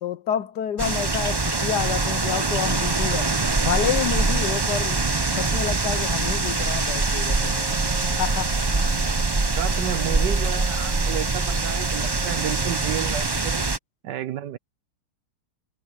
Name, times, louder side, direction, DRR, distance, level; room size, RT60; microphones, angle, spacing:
voice 1, 0.0-7.7 8.2-8.6, left 9 dB, 65° left, 1.3 m, -29 dB
sound 1, 0.8-13.8, right 3 dB, 40° right, 0.3 m, -24 dB
Wind instrument woodwind instrument, 7.3-13.3, right 4 dB, 25° right, 4.2 m, -40 dB
voice 2, 9.5-13.7 14.0-14.6, right 11 dB, 70° right, 1.3 m, -31 dB
omnidirectional pair, 2.1 m